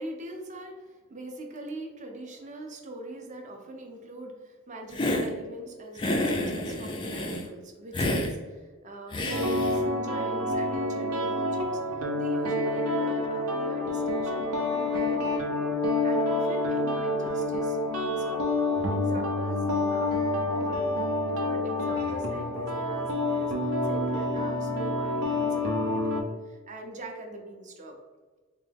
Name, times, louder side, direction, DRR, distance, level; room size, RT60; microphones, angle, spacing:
voice 1, 0.0-18.4 18.9-21.0 21.4-28.0, right 1 dB, 35° right, 3 dB, 0.5 m, -42 dB
Hiss, 4.9-5.3 6.0-7.5 7.9-8.3 9.1-9.8, left 1 dB, 20° left, 0.3 m, -29 dB
sound 1, 9.3-26.2, left 2 dB, 80° right, 0.6 m, -28 dB
3.8 x 2.2 x 3.4 m, 1.3 s
head